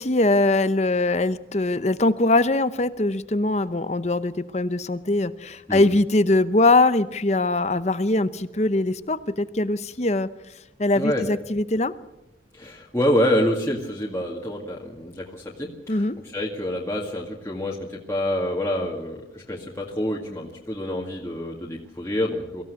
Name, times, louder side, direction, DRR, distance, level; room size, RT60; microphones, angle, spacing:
voice 1, 0.0-10.3 10.8-11.9 15.9-16.1, left 2 dB, 35° left, 13 dB, 0.8 m, -22 dB
voice 2, 11.0-11.3 12.5-22.6, left 1 dB, 15° left, -3 dB, 2.0 m, -27 dB
23.5 x 15.5 x 8.2 m, 0.89 s
head